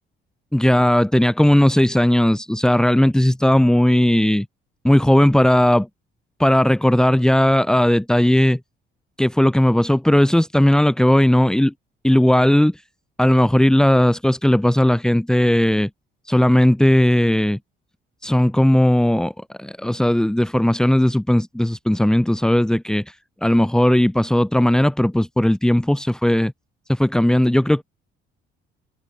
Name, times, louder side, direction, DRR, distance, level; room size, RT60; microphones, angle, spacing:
voice 1, 0.5-4.5 4.8-5.9 6.4-8.6 9.2-11.7 12.0-12.8 13.2-15.9 16.3-17.6 18.2-23.2 23.4-26.5 26.9-27.8, left 1 dB, 5° left, 4.1 m, -17 dB
cardioid pair, 165°, 21 cm